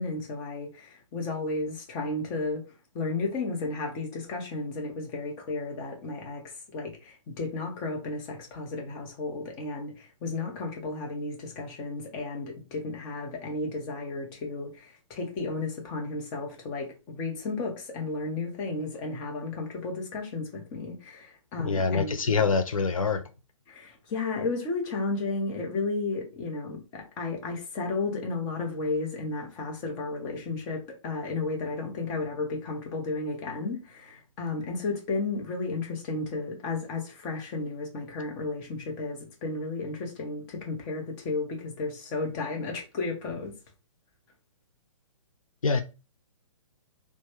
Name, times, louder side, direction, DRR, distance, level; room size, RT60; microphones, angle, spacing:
voice 1, 0.0-2.6 2.9-6.4 6.7-22.2 23.7-43.5, left 3 dB, 25° left, 0.8 m, -33 dB
voice 2, 21.6-23.2 45.6-45.8, left 5 dB, 80° left, 0.4 m, -25 dB
3.1 x 2.2 x 2.9 m
figure-of-eight pair, 125°, 17 cm